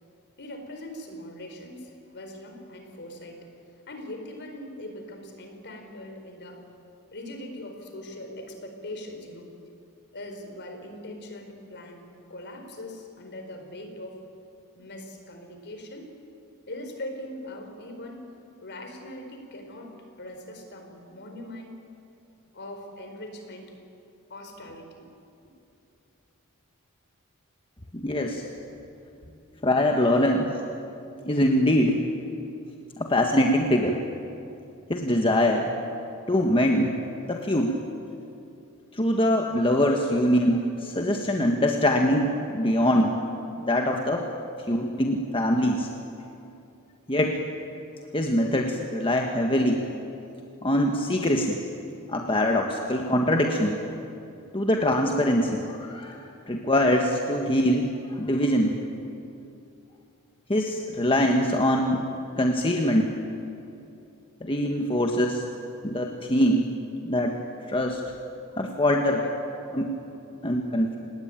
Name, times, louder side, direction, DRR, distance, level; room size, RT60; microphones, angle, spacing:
voice 1, 0.4-3.5 3.9-6.7 7.1-9.5 10.1-14.3 14.7-16.1 16.7-18.3 18.6-21.8 22.5-23.7 24.3-25.0 68.9-69.3 70.1-70.2 70.8-70.9, left 1 dB, 50° left, 5 dB, 4.4 m, -41 dB
voice 2, 27.9-28.4 29.6-30.5 31.2-32.0 33.0-33.9 34.9-35.7 36.3-36.9 37.3-37.8 38.9-43.1 43.6-44.2 44.7-45.9 47.1-47.4 48.1-49.8 50.6-51.6 52.1-53.8 54.5-58.7 60.5-62.0 62.4-63.1 64.4-65.4 65.8-66.7 67.0-67.4 67.7-68.0 68.6-69.2 69.8-69.9 70.4-71.0, left 1 dB, 25° left, 2 dB, 1.5 m, -23 dB
28.5 x 19.5 x 9.1 m, 2.7 s
head